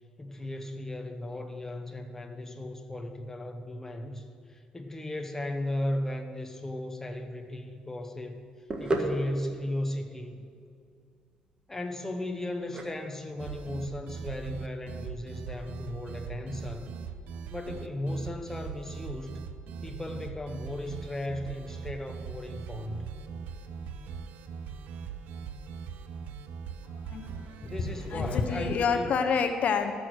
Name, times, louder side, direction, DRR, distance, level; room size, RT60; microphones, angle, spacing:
voice 1, 0.2-8.4 8.8-10.4 11.7-16.9 17.5-19.4 19.8-23.1 27.6-29.1, left 1 dB, 15° left, 5 dB, 1.1 m, -36 dB
sound 1, 7.4-15.3, right 2 dB, 30° right, 1.5 m, -37 dB
sound 2, 13.4-28.9, right 6 dB, 80° right, 0.6 m, -40 dB
voice 2, 27.0-27.7 28.1-29.9, left 6 dB, 60° left, 7 dB, 0.8 m, -28 dB
13.5 x 6.3 x 6.4 m, 2.3 s
cardioid pair, 95°, 3 cm